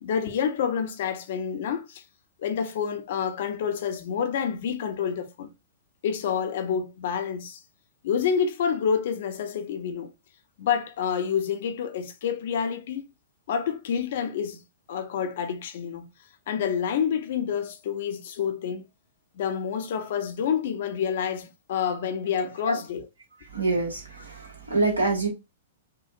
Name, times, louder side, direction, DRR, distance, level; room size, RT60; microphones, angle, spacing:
voice 1, 0.0-2.0 2.4-5.5 6.0-7.6 8.0-10.1 10.6-13.0 13.5-14.6 14.9-16.1 16.5-18.8 19.4-23.1, left 7 dB, 55° left, 0.7 m, -28 dB
voice 2, 23.5-25.3, right 3 dB, 85° right, 1.7 m, -26 dB
4.5 x 2.5 x 2.4 m
figure-of-eight pair, 105°, 0 cm